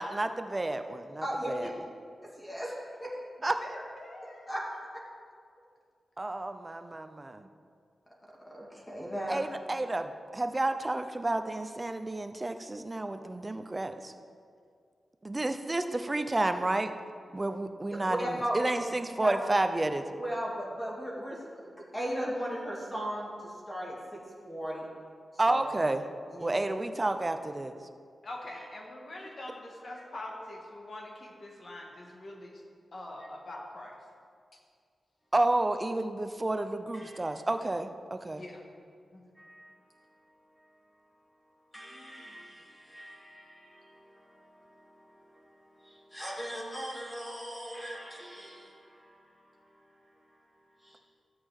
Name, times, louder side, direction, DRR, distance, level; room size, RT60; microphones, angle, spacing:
voice 1, 0.0-1.2 3.4-3.6 6.2-7.5 9.3-14.1 15.2-16.9 17.3-18.2 18.5-20.0 25.4-26.0 26.4-27.7 35.3-38.4, right 2 dB, 20° right, 0.5 m, -30 dB
voice 2, 1.2-1.7 2.4-3.1 4.5-4.6 8.4-9.4 18.1-18.6 19.2-19.4 20.2-24.9 25.5-25.6 26.3-26.7 28.5-28.7 30.0-30.1 36.9-37.2 39.3-40.2 40.6-40.7 41.7-51.0, equal, 15° left, 2.4 m, -38 dB
voice 3, 3.6-4.5 28.2-32.6 32.9-33.9 38.4-38.7 39.1-39.2, left 1 dB, 45° left, 1.6 m, -44 dB
13.5 x 8.7 x 3.6 m
wide cardioid pair, 115°, 0 cm